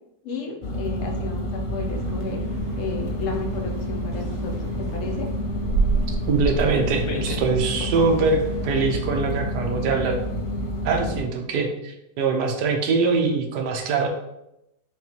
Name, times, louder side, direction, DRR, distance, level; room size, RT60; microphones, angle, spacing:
voice 1, 0.2-2.4 2.8-5.3 7.1-7.4, left 3 dB, 60° left, 2 dB, 0.9 m, -33 dB
sound 1, 0.6-11.2, equal, 85° left, 0.5 m, -29 dB
sound 2, 1.8-8.7, right 3 dB, 65° right, 1.6 m, -31 dB
voice 2, 6.1-10.2 10.8-14.1, right 4 dB, 80° right, 4 dB, 1.2 m, -23 dB
5.3 x 2.4 x 2.8 m, 0.85 s
omnidirectional pair, 1.8 m